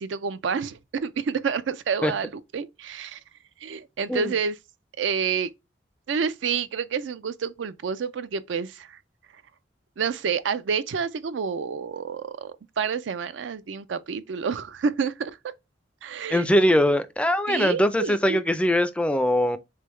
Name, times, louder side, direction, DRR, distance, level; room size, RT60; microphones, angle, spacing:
voice 1, 0.0-3.2 3.6-4.6 5.0-5.5 6.1-9.0 10.0-15.4 16.0-16.5 17.5-18.4, right 6 dB, 85° right, 0.4 m, -29 dB
voice 2, 16.3-19.6, equal, 5° left, 0.3 m, -21 dB
3.7 x 3.4 x 3.0 m
head